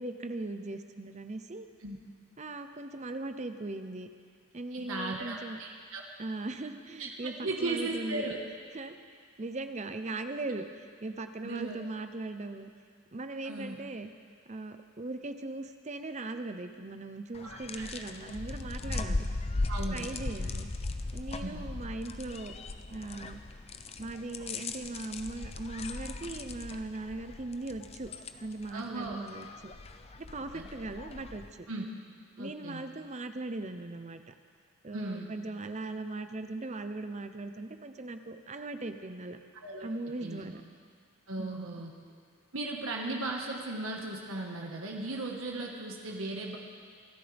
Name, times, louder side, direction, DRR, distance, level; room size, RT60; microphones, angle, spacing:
voice 1, 0.0-1.7 2.4-4.1 4.5-5.6 6.2-7.3 7.6-8.3 8.7-9.0 9.4-10.7 11.0-12.7 13.1-14.1 14.5-19.3 19.9-20.7 21.1-22.5 22.9-23.4 24.0-28.1 28.4-29.7 30.2-31.4 32.4-34.3 34.8-39.4 39.8-40.6 41.4-41.8, right 2 dB, 35° right, 8 dB, 0.7 m, -39 dB
voice 2, 4.7-6.0 7.0-7.1 7.4-8.4 11.4-11.8 13.4-13.8 17.4-18.0 19.1-19.2 19.7-20.1 21.4-21.6 28.7-29.2 30.5-30.7 31.7-31.8 32.4-32.8 34.9-35.3 39.6-39.9 40.2-40.5 41.3-41.9 42.5-46.6, right 2 dB, 75° right, 0 dB, 1.6 m, -37 dB
sound 1, 17.3-31.5, left 2 dB, 30° left, 0.5 m, -38 dB
25.5 x 12.5 x 3.5 m, 2.1 s
head